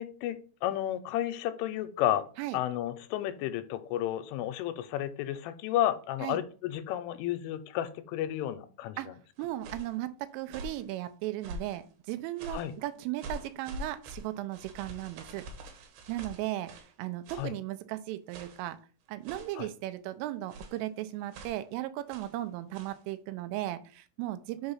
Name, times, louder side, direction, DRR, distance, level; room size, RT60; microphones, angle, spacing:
voice 1, 0.0-2.3 2.5-9.1 12.5-12.7 17.3-17.5 19.6-19.7, left 12 dB, 85° left, 11 dB, 3.0 m, -32 dB
sound 1, 9.4-10.0 10.4-10.9 11.4-11.8 12.4-12.8 13.2-16.9 17.3-17.5 18.3-18.7 19.2-19.7 20.5-20.8 21.3-21.6 22.1-22.4 22.7-23.0, equal, 70° right, 2.7 m, -44 dB
voice 2, 9.4-15.4 16.1-16.7 17.0-18.8 19.1-24.7, right 15 dB, 85° right, 11 dB, 3.1 m, -36 dB
7.0 x 3.8 x 5.6 m, 0.38 s
omnidirectional pair, 5.8 m